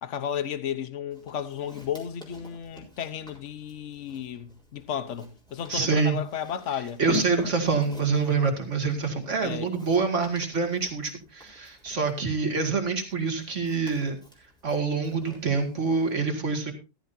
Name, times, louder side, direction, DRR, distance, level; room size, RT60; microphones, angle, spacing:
voice 1, 0.0-7.0 9.4-9.7, left 9 dB, 80° left, 1.2 m, -33 dB
Walk footsteps, 1.1-16.2, left 3 dB, 5° left, 4.0 m, -45 dB
voice 2, 5.7-6.2 7.0-14.2 14.6-16.7, right 4 dB, 85° right, 2.6 m, -26 dB
14.0 x 14.0 x 2.7 m
omnidirectional pair, 1.2 m